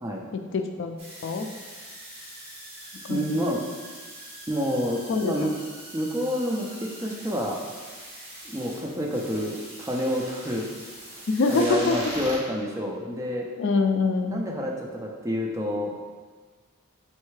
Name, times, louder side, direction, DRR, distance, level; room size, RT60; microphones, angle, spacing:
voice 1, 0.3-1.5 3.1-3.3 5.1-5.5 11.3-12.0 13.6-14.5, left 4 dB, 60° left, 6 dB, 0.3 m, -25 dB
sound 1, 1.0-12.4, right 1 dB, 30° right, 1.4 m, -42 dB
voice 2, 3.1-3.6 4.5-5.5 5.9-7.6 8.5-10.7 11.5-13.5 14.3-15.9, equal, 15° right, -1 dB, 0.4 m, -28 dB
4.4 x 3.2 x 3.2 m, 1.5 s
head